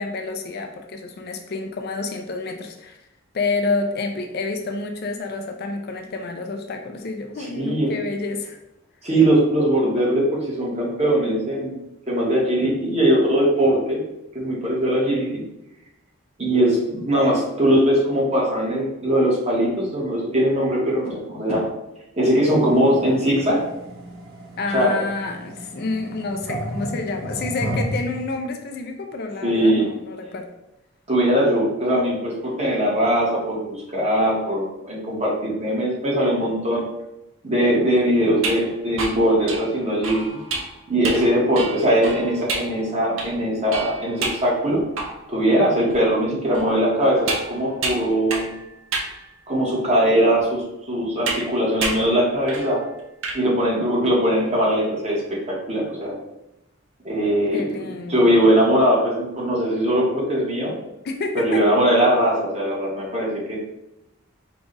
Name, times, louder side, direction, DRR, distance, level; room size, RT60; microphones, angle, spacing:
voice 1, 0.0-3.0 3.3-8.6 24.6-30.5 57.5-58.2 61.0-61.6, left 3 dB, 50° left, 4 dB, 0.4 m, -29 dB
voice 2, 7.5-7.9 9.0-11.8 12.1-14.0 14.3-15.4 16.4-21.6 22.2-23.6 24.7-25.0 29.4-29.8 31.1-36.8 37.4-40.3 40.9-44.8 45.3-48.5 49.5-52.8 53.3-56.2 57.0-60.7 61.3-63.6, equal, 30° right, -4 dB, 1.3 m, -20 dB
sound 1, 22.4-28.2, right 1 dB, 90° right, 1.0 m, -33 dB
sound 2, 38.3-45.4 45.9-46.0 46.5-48.6 48.9-49.2 49.8-49.9 51.3-51.5 51.8-52.1 52.5-52.7 53.0-53.4, right 3 dB, 70° right, 0.7 m, -30 dB
4.9 x 2.4 x 3.9 m, 0.91 s
head